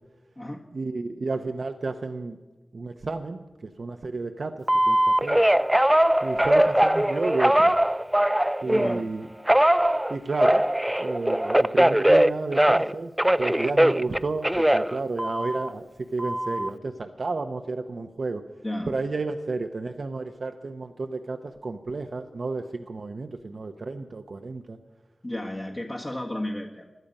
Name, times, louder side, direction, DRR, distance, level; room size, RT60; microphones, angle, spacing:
voice 1, 0.7-2.4 2.7-5.4 6.2-7.7 8.6-9.3 10.1-10.6 11.0-13.1 13.4-15.8 16.1-18.5 18.9-24.8, right 3 dB, 65° right, 6 dB, 0.8 m, -31 dB
Telephone, 4.7-9.0 9.5-12.9 13.2-15.7 16.2-16.7, right 1 dB, 10° right, 0.5 m, -21 dB
voice 2, 8.6-9.1 18.6-18.9 25.2-26.9, left 1 dB, 30° left, -3 dB, 1.6 m, -33 dB
17.5 x 11.5 x 5.4 m, 1.1 s
cardioid pair, 45°, 0 cm